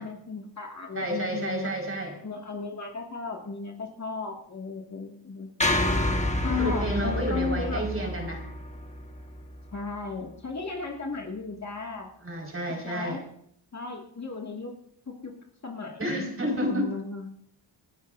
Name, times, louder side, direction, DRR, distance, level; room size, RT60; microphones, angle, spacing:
voice 1, 0.0-1.7 2.2-5.9 6.4-7.8 9.7-12.1 12.8-13.2 13.7-14.7 15.1-15.3 15.6-16.3 16.7-17.3, left 4 dB, 35° left, 0 dB, 2.1 m, -35 dB
voice 2, 0.9-2.2 6.6-8.4 12.2-13.2 16.0-16.9, equal, 25° right, 1 dB, 4.9 m, -30 dB
sound 1, 5.6-9.9, left 1 dB, 15° left, 1.5 m, -29 dB
28.5 x 10.5 x 2.6 m, 0.67 s
cardioid pair, 105°, 50 cm